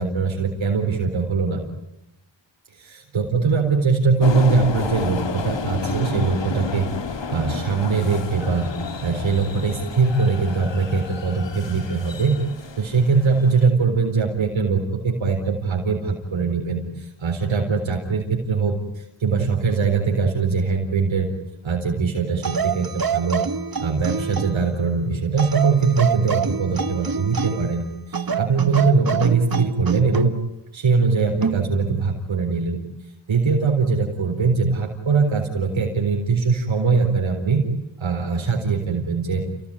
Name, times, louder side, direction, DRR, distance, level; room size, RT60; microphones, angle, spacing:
voice 1, 0.0-1.6 2.7-6.9 7.3-8.7 9.0-12.4 12.8-21.3 21.6-23.4 23.8-30.3 30.7-32.8 33.3-37.6 38.0-39.5, right 4 dB, 85° right, 1 dB, 4.3 m, -21 dB
sound 1, 4.2-13.7, left 4 dB, 70° left, 2.6 m, -31 dB
sound 2, 22.4-24.7 25.4-27.7 28.1-30.3 31.4-31.7, right 6 dB, 50° right, 1.5 m, -26 dB
29.5 x 17.5 x 9.9 m, 0.89 s
cardioid pair, 60°, 45 cm